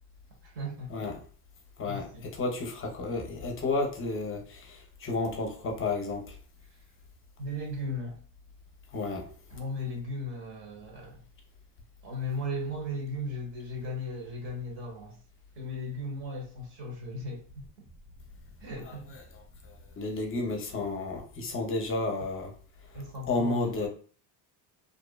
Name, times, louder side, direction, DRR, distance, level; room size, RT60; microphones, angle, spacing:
voice 1, 0.4-0.9 1.8-2.2 7.4-8.2 9.5-11.2 12.0-15.2 15.6-17.7 18.6-19.2 22.9-23.7, left 1 dB, 55° right, 1.2 m, -36 dB
voice 2, 2.4-4.4 5.0-6.2 8.9-9.2 18.9-19.0 20.0-22.5 23.3-23.9, left 3 dB, 30° left, 0.6 m, -31 dB
2.6 x 2.1 x 2.2 m
cardioid pair, 125°, 48 cm